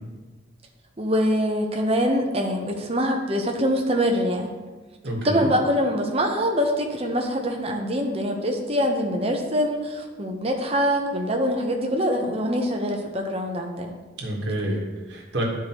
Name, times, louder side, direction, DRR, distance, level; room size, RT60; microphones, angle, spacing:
voice 1, 1.0-4.5 5.2-13.9, equal, 30° right, 2 dB, 0.8 m, -24 dB
voice 2, 5.0-5.5 14.2-15.4, right 1 dB, 60° right, -1 dB, 1.4 m, -28 dB
10.5 x 4.7 x 2.9 m, 1.3 s
head